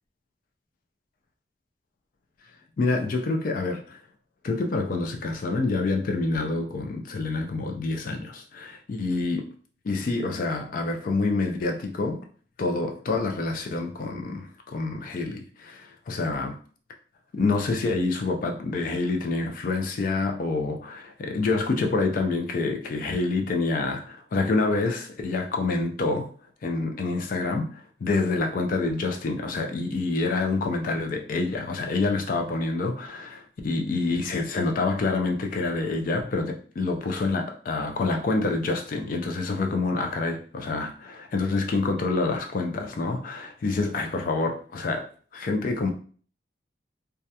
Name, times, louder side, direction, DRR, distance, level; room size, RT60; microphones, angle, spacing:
voice 1, 2.8-4.0 4.4-9.5 9.8-12.3 12.6-16.6 17.4-26.3 26.6-45.9, left 3 dB, 45° left, 0.3 m, -27 dB
2.2 x 2.1 x 2.7 m
head